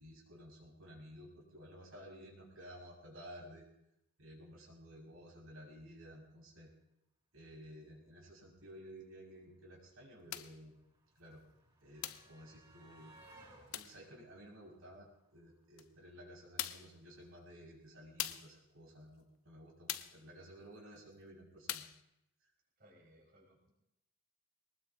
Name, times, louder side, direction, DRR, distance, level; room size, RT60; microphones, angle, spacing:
voice 1, 0.0-3.7 4.2-6.7 7.3-10.8 11.2-11.4 11.8-13.2 13.7-21.9, equal, 75° right, -3 dB, 5.6 m, -54 dB
sound 1, 9.1-9.2 9.4-15.6 16.8-16.9 17.2-17.3, right 2 dB, 20° right, 6.0 m, -63 dB
sound 2, 10.3-10.6 12.0-12.3 13.7-14.0 15.8-15.9 16.6-17.0 18.2-18.6 19.9-20.2 21.7-22.0, left 11 dB, 80° left, 0.7 m, -41 dB
voice 2, 22.8-23.7, equal, 45° right, -2 dB, 4.4 m, -64 dB
22.5 x 19.5 x 2.7 m, 0.84 s
head